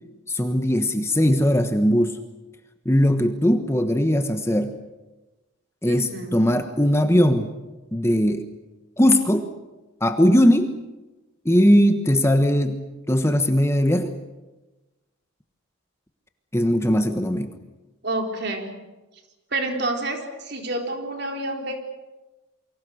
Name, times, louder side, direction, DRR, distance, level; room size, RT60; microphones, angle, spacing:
voice 1, 0.3-2.2 2.8-4.8 5.8-7.5 7.9-8.5 9.0-9.5 10.0-10.7 11.4-14.2 16.5-17.5, equal, 10° left, 7 dB, 1.3 m, -19 dB
voice 2, 5.9-6.4 18.0-18.7 19.5-21.8, right 2 dB, 50° right, 3 dB, 4.1 m, -28 dB
28.5 x 24.0 x 6.5 m, 1.1 s
head